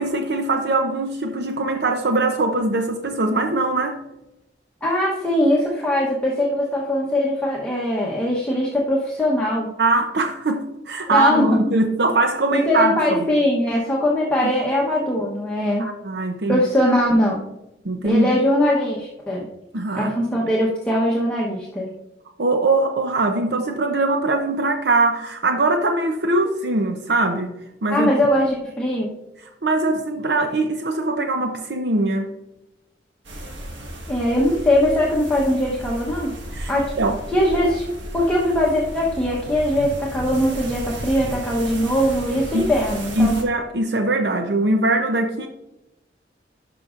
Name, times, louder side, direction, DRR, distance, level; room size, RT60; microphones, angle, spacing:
voice 1, 0.0-4.0 9.8-13.3 15.8-16.6 17.8-18.3 19.7-20.1 22.4-27.5 27.8-28.1 29.6-32.3 36.5-37.2 42.5-42.7 43.1-45.5, right 2 dB, 65° right, 5 dB, 0.6 m, -21 dB
voice 2, 4.8-9.7 11.1-11.6 12.5-15.9 16.5-17.4 18.0-19.5 19.9-21.9 27.9-29.1 34.1-36.4 36.7-36.9 37.3-37.8 38.1-43.4, left 1 dB, 5° left, -5 dB, 0.9 m, -21 dB
sound 1, 33.2-43.4, right 1 dB, 90° right, 1.5 m, -34 dB
11.5 x 6.0 x 2.5 m, 0.91 s
head